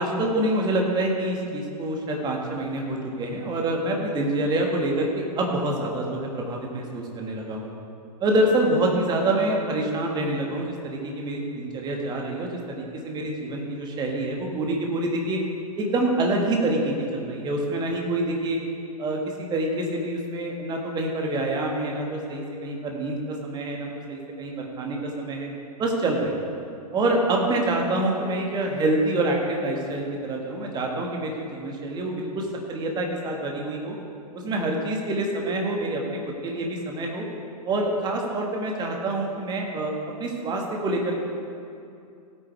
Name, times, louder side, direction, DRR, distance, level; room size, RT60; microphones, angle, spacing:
voice 1, 0.0-7.7 8.2-15.4 15.8-18.6 19.0-25.5 25.8-26.3 26.9-34.0 34.3-37.2 37.7-39.9 40.2-41.2, right 1 dB, 20° right, 0 dB, 1.7 m, -26 dB
15.5 x 9.1 x 3.5 m, 2.5 s
figure-of-eight pair, 105°, 20 cm